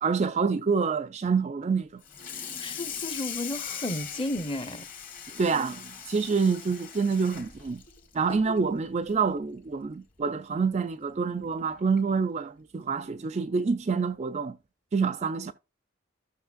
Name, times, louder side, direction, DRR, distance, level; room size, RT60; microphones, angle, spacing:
voice 1, 0.0-2.0 5.3-7.8 8.1-14.6 14.9-15.5, right 5 dB, 30° right, 0.3 m, -27 dB
Water tap faucet / Sink (filling or washing), 2.0-8.7 9.1-9.3 9.7-9.8 10.2-10.3 11.4-11.5 12.0-12.2, left 7 dB, 40° left, 1.7 m, -40 dB
voice 2, 2.6-4.9, left 1 dB, 25° left, 0.7 m, -33 dB
14.5 x 6.3 x 2.3 m
head